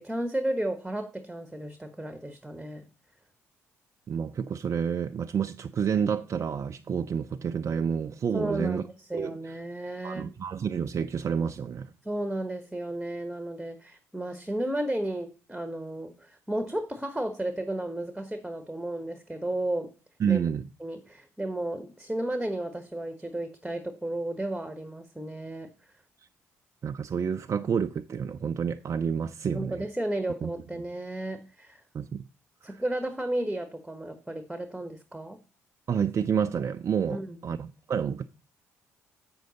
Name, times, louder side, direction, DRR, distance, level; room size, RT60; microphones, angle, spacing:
voice 1, 0.0-2.8 8.3-10.3 12.0-19.9 20.3-20.4 20.8-25.7 29.5-31.8 32.6-35.4 37.1-37.4, right 1 dB, 5° right, 1.1 m, -33 dB
voice 2, 4.1-8.8 9.1-9.6 10.0-11.9 20.2-20.7 26.8-29.9 30.4-30.5 31.9-32.2 32.6-32.8 35.9-38.3, right 7 dB, 45° right, 0.5 m, -29 dB
7.7 x 6.3 x 4.0 m
hypercardioid pair, 45°, 7 cm